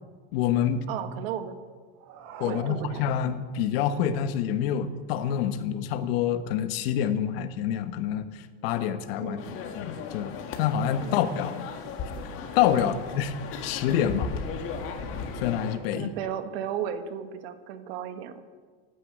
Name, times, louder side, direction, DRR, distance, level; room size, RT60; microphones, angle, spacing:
voice 1, 0.3-0.9 2.4-9.4 9.7-11.7 12.2-13.3 13.6-14.3 15.3-16.1, left 9 dB, 70° left, 10 dB, 1.3 m, -27 dB
voice 2, 0.9-1.6 2.5-3.3 9.2-9.5 11.0-11.2 12.8-13.0 15.9-18.4, right 9 dB, 75° right, 9 dB, 1.5 m, -35 dB
sound 1, 1.9-3.6, right 7 dB, 50° right, 1.9 m, -42 dB
sound 2, 9.4-15.8, left 5 dB, 45° left, 1.9 m, -36 dB
12.5 x 10.0 x 9.2 m, 1.5 s
supercardioid pair, 150°, 31 cm